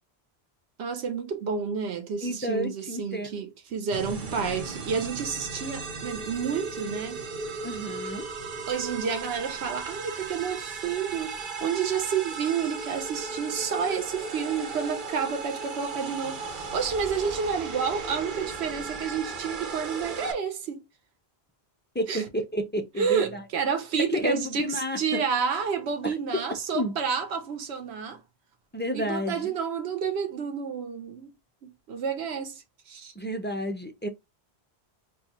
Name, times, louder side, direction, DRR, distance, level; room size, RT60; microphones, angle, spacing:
voice 1, 0.8-7.2 8.7-20.9 22.1-22.2 23.0-28.2 28.9-31.3 31.6-33.1, right 6 dB, 90° right, 1.0 m, -30 dB
voice 2, 2.2-3.4 7.6-8.3 21.9-23.4 23.9-25.2 26.0-26.4 26.7-26.9 28.7-29.5 33.2-34.1, equal, 20° left, 0.3 m, -30 dB
sound 1, 3.9-20.3, right 4 dB, 55° right, 0.9 m, -36 dB
4.6 x 2.3 x 2.8 m
omnidirectional pair, 1.1 m